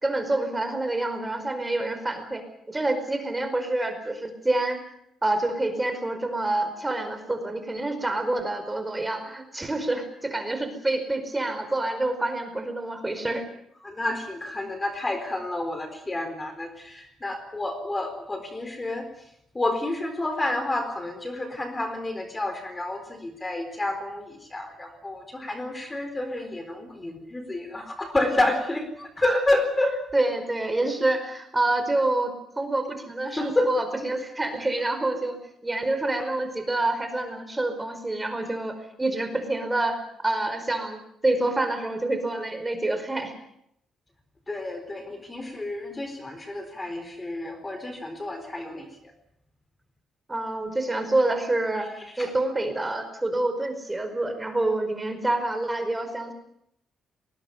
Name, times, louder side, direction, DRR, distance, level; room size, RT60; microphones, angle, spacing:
voice 1, 0.0-4.8 5.2-13.4 30.1-35.4 35.6-40.0 40.2-43.3 50.3-51.9 52.2-56.3, right 2 dB, 15° right, 8 dB, 4.9 m, -27 dB
voice 2, 13.8-19.1 19.5-30.0 33.4-33.7 44.5-48.9 52.1-52.3, left 2 dB, 20° left, 8 dB, 4.2 m, -29 dB
20.5 x 18.5 x 9.4 m, 0.75 s
cardioid pair, 90°, 0 cm